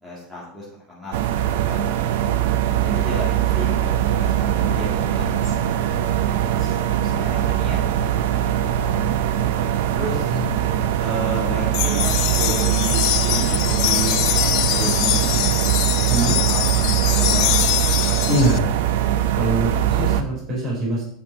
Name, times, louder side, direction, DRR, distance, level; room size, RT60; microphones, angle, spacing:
voice 1, 0.0-2.1 2.8-6.7 7.1-9.1 9.9-10.4 11.0-15.5 15.9-17.8, equal, 10° right, -7 dB, 2.3 m, -33 dB
sound 1, 1.1-20.2, right 11 dB, 75° right, 0.6 m, -21 dB
sound 2, 11.7-18.6, left 17 dB, 45° left, 0.4 m, -23 dB
voice 2, 18.3-18.7 19.3-21.1, equal, 30° right, -5 dB, 4.0 m, -23 dB
8.7 x 7.0 x 3.5 m, 0.66 s
supercardioid pair, 175°, 0 cm